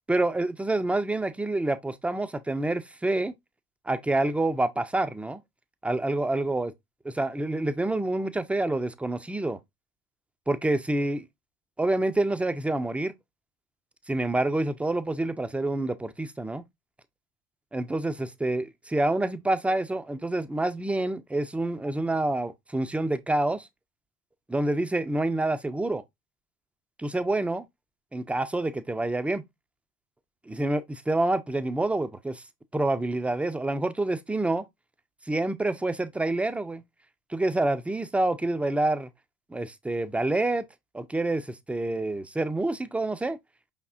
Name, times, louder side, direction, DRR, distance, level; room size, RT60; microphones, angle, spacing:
voice 1, 0.1-3.3 3.9-5.4 5.8-6.7 7.0-9.6 10.5-11.3 11.8-13.1 14.1-16.6 17.7-23.7 24.5-26.0 27.0-27.7 28.1-29.4 30.5-32.4 32.7-34.6 35.3-36.8 37.3-39.1 39.5-40.6 40.9-43.4, right 2 dB, 5° right, 0.4 m, -27 dB
5.3 x 3.6 x 2.4 m
hypercardioid pair, 65°, 34 cm